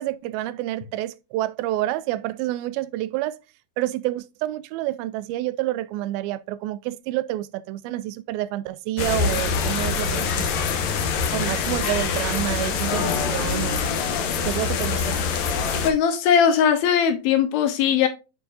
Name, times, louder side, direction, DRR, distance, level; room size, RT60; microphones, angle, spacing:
voice 1, 0.0-3.4 3.8-10.5 11.3-13.8 14.4-15.2, right 15 dB, 85° right, 2.4 m, -28 dB
sound 1, 9.0-15.9, left 5 dB, 70° left, 1.7 m, -24 dB
voice 2, 15.8-18.1, left 8 dB, 85° left, 2.8 m, -19 dB
8.3 x 4.8 x 2.6 m
omnidirectional pair, 4.2 m